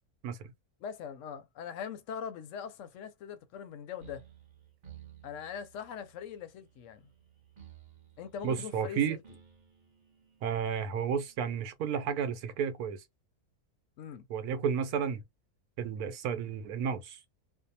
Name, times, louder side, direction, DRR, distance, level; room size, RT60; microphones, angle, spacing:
voice 1, 0.8-4.2 5.2-7.0 8.2-9.2 14.0-14.3, left 7 dB, 65° left, 0.8 m, -41 dB
sound 1, 4.0-11.5, right 10 dB, 45° right, 0.8 m, -56 dB
voice 2, 8.4-9.2 10.4-13.0 14.3-15.2 15.8-17.2, right 7 dB, 85° right, 1.1 m, -32 dB
2.6 x 2.1 x 2.6 m
omnidirectional pair, 1.6 m